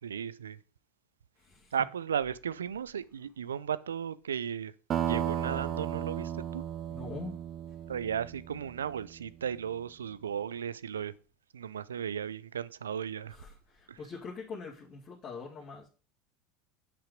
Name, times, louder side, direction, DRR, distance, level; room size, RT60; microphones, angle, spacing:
voice 1, 0.0-0.6 1.7-4.7 5.0-6.6 7.9-11.1 11.5-13.4 13.9-14.0, right 8 dB, 80° right, 0.5 m, -35 dB
voice 2, 1.4-1.7 6.9-7.3 13.3-15.9, left 4 dB, 35° left, 2.4 m, -43 dB
sound 1, 4.9-9.2, right 10 dB, 40° right, 1.1 m, -35 dB
8.5 x 5.8 x 5.1 m
figure-of-eight pair, 80°, 0 cm